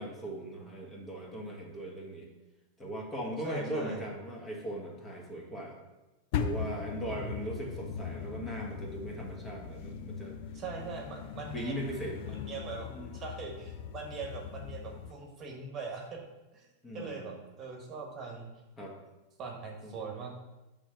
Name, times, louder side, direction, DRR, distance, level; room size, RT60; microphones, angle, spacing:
voice 1, 0.0-2.3 2.8-5.8 6.4-10.3 10.8-10.9 11.5-12.2 12.8-13.1 16.8-17.3 18.8-19.0 19.8-19.9, right 1 dB, 20° left, -1 dB, 1.7 m, -39 dB
voice 2, 3.4-4.1 7.1-7.7 10.5-11.9 12.3-16.2 16.5-16.7 16.9-18.5 19.4-20.3, right 4 dB, 35° right, 1 dB, 1.2 m, -41 dB
sound 1, 6.3-15.1, left 7 dB, 60° left, 0.5 m, -39 dB
5.9 x 3.4 x 6.0 m, 1.0 s
hypercardioid pair, 110°, 0 cm